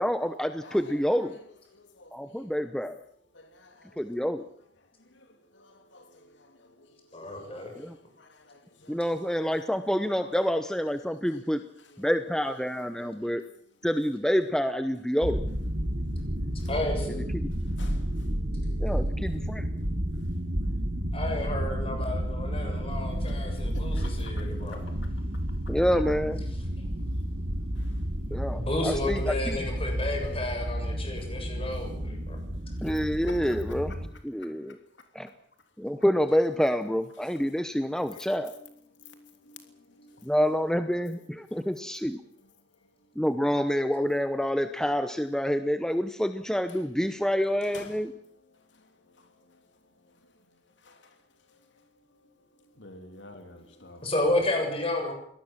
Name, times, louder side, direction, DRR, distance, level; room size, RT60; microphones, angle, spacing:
voice 1, 0.0-1.3 2.1-3.0 4.0-4.4 7.8-7.9 8.9-11.6 12.0-13.4 13.8-15.4 17.3-17.5 18.8-19.6 25.7-26.4 28.3-29.2 29.5-29.6 32.8-33.9 34.2-34.7 35.1-35.3 35.8-38.5 40.2-42.2 43.2-48.1, equal, 5° left, 0.9 m, -27 dB
voice 2, 0.6-2.8 3.1-9.1 9.5-9.7 10.1-10.5 10.9-12.1 12.9-13.5 15.8-16.7 17.4-21.1 23.2-25.8 26.8-28.6 29.9-30.0 31.1-31.8 32.3-32.5 32.8-35.1 37.2-37.4 37.8-40.4 40.9-43.2 46.7-46.9 47.6-54.1, left 3 dB, 80° left, 3.0 m, -54 dB
voice 3, 7.1-7.7 16.7-17.2 21.1-24.8 26.8-26.9 28.5-32.4 54.0-55.1, left 1 dB, 30° left, 7.2 m, -31 dB
sound 1, 15.2-34.1, equal, 60° right, 2.9 m, -31 dB
24.5 x 18.5 x 7.4 m
head